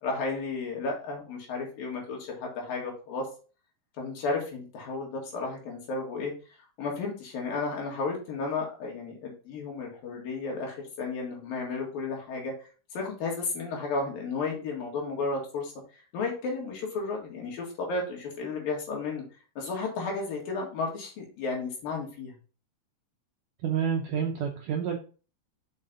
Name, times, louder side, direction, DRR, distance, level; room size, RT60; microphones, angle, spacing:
voice 1, 0.0-3.3 4.0-6.3 6.8-12.7 12.9-15.7 16.1-19.2 19.6-22.3, left 3 dB, 65° left, -1 dB, 3.5 m, -33 dB
voice 2, 23.6-25.0, right 7 dB, 75° right, 2 dB, 1.9 m, -28 dB
6.3 x 5.7 x 3.7 m, 0.36 s
omnidirectional pair, 4.7 m